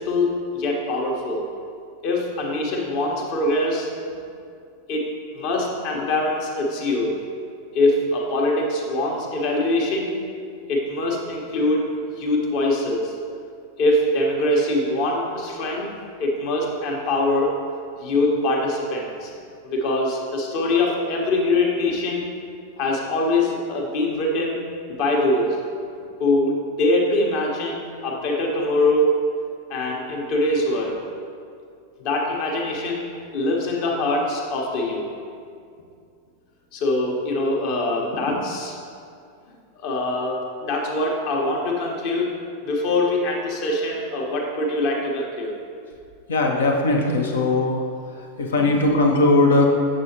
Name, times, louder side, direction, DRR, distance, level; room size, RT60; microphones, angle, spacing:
voice 1, 0.0-1.5 2.0-3.9 4.9-5.1 5.3-7.1 7.7-10.2 10.7-11.9 12.2-13.1 13.8-15.9 16.2-17.5 18.0-19.3 19.6-22.4 22.8-24.6 24.9-25.6 26.2-29.1 29.7-31.0 32.0-33.1 33.3-35.1 36.7-38.8 39.8-42.3 42.6-45.6, left 2 dB, 45° left, -1 dB, 1.1 m, -23 dB
voice 2, 46.3-47.8 48.4-49.7, left 2 dB, 65° left, 1 dB, 0.8 m, -19 dB
7.4 x 6.3 x 2.8 m, 2.4 s
figure-of-eight pair, 90°, 0 cm